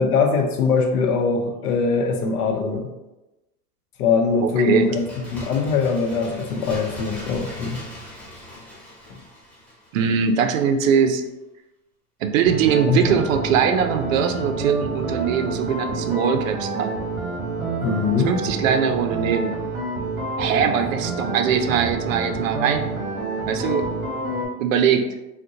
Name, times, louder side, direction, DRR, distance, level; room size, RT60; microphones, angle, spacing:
voice 1, 0.0-2.9 4.0-7.8 9.1-9.2 12.9-13.2 17.8-18.3, left 5 dB, 75° left, 3 dB, 0.7 m, -22 dB
voice 2, 4.4-4.9 9.9-11.2 12.2-16.9 18.3-19.5 20.4-22.9 23.5-23.9 24.6-25.2, right 7 dB, 60° right, 6 dB, 0.5 m, -21 dB
Bird, 4.8-10.3 10.6-10.7, left 1 dB, 5° left, 0.3 m, -39 dB
sound 1, 12.5-24.5, right 3 dB, 40° right, 1.0 m, -28 dB
3.5 x 2.2 x 2.7 m, 1.0 s
hypercardioid pair, 110°, 46 cm